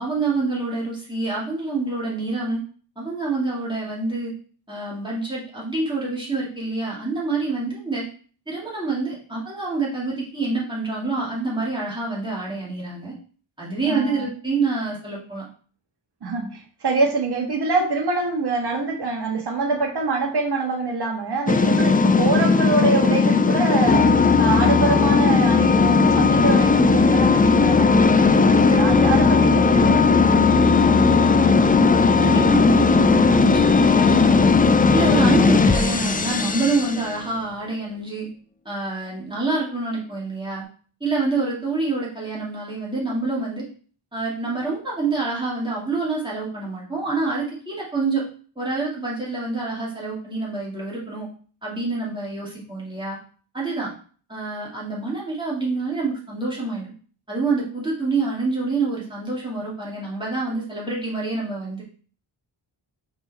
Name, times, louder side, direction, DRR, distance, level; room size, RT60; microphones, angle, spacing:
voice 1, 0.0-2.6 3.0-4.3 4.7-8.1 8.5-13.1 13.6-15.5 32.2-34.5 34.9-38.3 38.6-40.6 41.0-43.7 44.1-48.2 48.6-51.3 51.6-53.2 53.5-53.9 54.3-56.9 57.3-61.8, right 3 dB, 10° right, -6 dB, 2.6 m, -27 dB
voice 2, 13.9-14.2 16.2-30.4, right 3 dB, 55° right, 1 dB, 1.6 m, -25 dB
sound 1, 21.5-37.2, left 4 dB, 20° left, 0.3 m, -17 dB
5.3 x 4.5 x 4.3 m, 0.43 s
wide cardioid pair, 150°, 47 cm